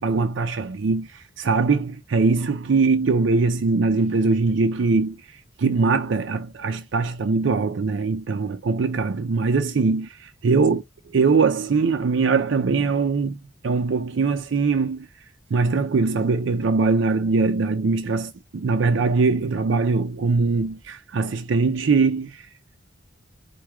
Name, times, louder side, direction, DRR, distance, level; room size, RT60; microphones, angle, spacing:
voice 1, 0.0-10.8 11.1-15.1 15.5-22.8, right 4 dB, 65° right, 0.4 m, -22 dB
4.7 x 2.2 x 4.3 m
head